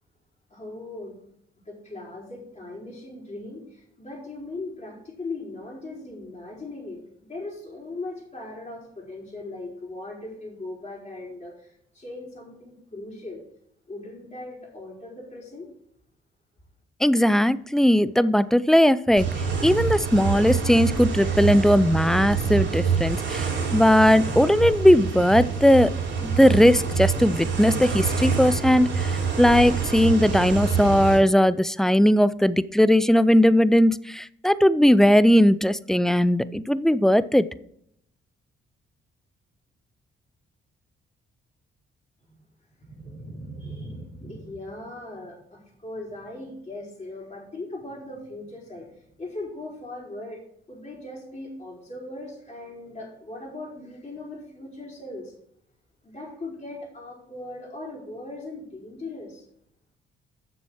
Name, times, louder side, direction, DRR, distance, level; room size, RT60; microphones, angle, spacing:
voice 1, 0.5-1.2 1.7-7.0 7.3-13.4 13.9-15.7 42.8-48.9 49.2-50.4 50.7-55.3 56.0-59.4, left 2 dB, 30° left, -7 dB, 4.3 m, -39 dB
voice 2, 17.0-19.3 19.6-25.9 26.2-29.1 29.4-37.5, equal, ahead, 17 dB, 0.4 m, -18 dB
sound 1, 19.2-31.2, right 6 dB, 65° right, 3.8 m, -26 dB
7.0 x 6.9 x 6.3 m, 0.72 s
cardioid pair, 90°, 20 cm